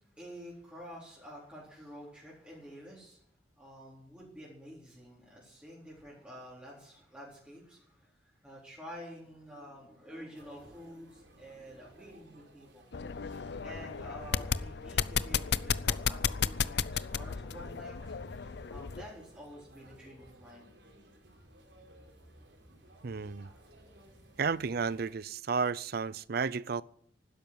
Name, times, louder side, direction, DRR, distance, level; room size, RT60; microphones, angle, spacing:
voice 1, 0.0-3.2 3.6-12.9 13.6-18.1 18.7-20.6, equal, 5° right, 4.2 m, -49 dB
sound 1, 10.3-25.1, right 1 dB, 85° right, 3.8 m, -58 dB
sound 2, 12.9-19.1, left 7 dB, 65° left, 0.6 m, -33 dB
voice 2, 23.0-23.5 24.4-26.8, right 5 dB, 60° right, 0.6 m, -32 dB
12.5 x 10.0 x 9.6 m
head